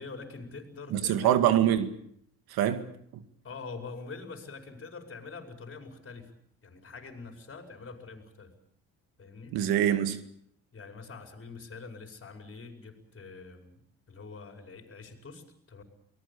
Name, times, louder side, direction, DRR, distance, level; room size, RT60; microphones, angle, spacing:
voice 1, 0.0-1.4 3.4-6.3 6.6-8.5 9.2-9.6 10.7-15.8, left 4 dB, 35° left, 5.5 m, -45 dB
voice 2, 0.9-1.9 2.5-2.9 3.1-3.2 9.5-10.2, right 11 dB, 85° right, 2.2 m, -25 dB
24.5 x 19.0 x 8.5 m
cardioid pair, 95°, 36 cm